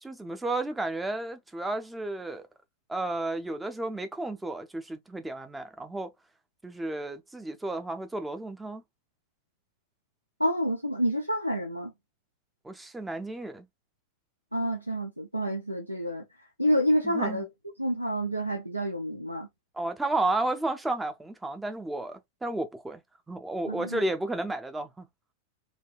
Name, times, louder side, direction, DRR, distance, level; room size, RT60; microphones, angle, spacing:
voice 1, 0.0-2.5 2.9-6.1 6.6-8.8 12.6-13.7 17.0-17.4 19.8-23.0 23.3-25.1, right 2 dB, 10° right, 0.5 m, -32 dB
voice 2, 10.4-11.9 14.5-16.2 16.6-17.5 17.8-19.5 23.7-24.0, equal, 90° right, 0.4 m, -28 dB
3.2 x 2.3 x 2.2 m
figure-of-eight pair, 90°, 0 cm